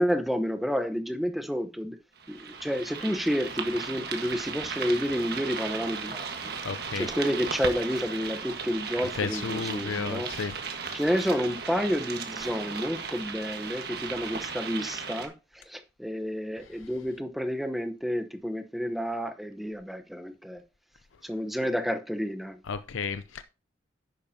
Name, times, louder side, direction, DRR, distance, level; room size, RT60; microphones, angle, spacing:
voice 1, 0.0-2.0 2.3-6.6 6.9-10.3 10.9-20.6 21.2-22.6, equal, ahead, 0.8 m, -30 dB
sound 1, 2.2-15.3, right 5 dB, 55° right, 1.5 m, -36 dB
voice 2, 6.6-7.1 9.1-10.5 22.7-23.4, left 5 dB, 85° left, 0.6 m, -33 dB
10.5 x 8.6 x 2.8 m
head